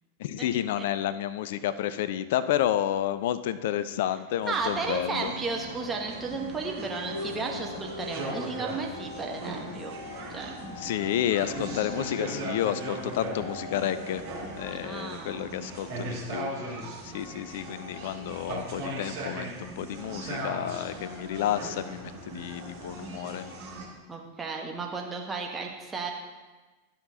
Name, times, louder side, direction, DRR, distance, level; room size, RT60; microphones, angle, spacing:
voice 1, 0.2-5.3 10.8-14.2 14.5-23.4, left 11 dB, 55° left, 14 dB, 0.4 m, -30 dB
sound 1, 4.4-23.9, right 1 dB, 45° right, 2.3 m, -39 dB
voice 2, 4.5-10.0 10.3-11.0 14.7-15.4 24.1-26.1, right 4 dB, 15° right, 1 dB, 1.2 m, -34 dB
sound 2, 4.8-16.1, left 2 dB, 75° left, 1.2 m, -43 dB
13.5 x 5.7 x 2.8 m, 1.2 s
figure-of-eight pair, 90°, 0 cm